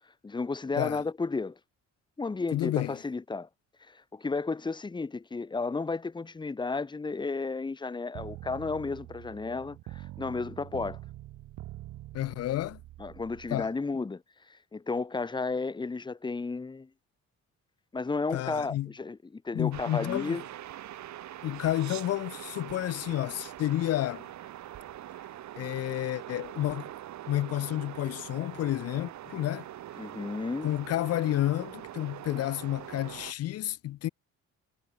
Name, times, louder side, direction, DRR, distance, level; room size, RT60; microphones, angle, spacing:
voice 1, 0.2-1.6 2.2-3.5 3.9-11.0 13.0-14.2 14.5-16.9 17.9-20.4 30.0-30.7, left 4 dB, 15° left, 0.7 m, -33 dB
voice 2, 2.5-3.0 12.1-12.8 13.5-13.7 18.3-18.9 19.5-20.4 21.4-24.3 25.6-26.9 27.3-29.7 30.6-34.1, left 14 dB, 55° left, 0.5 m, -30 dB
sound 1, 8.1-13.7, right 15 dB, 85° right, 2.7 m, -45 dB
sound 2, 19.7-33.3, right 12 dB, 65° right, 1.2 m, -43 dB
cardioid pair, 90°, 30 cm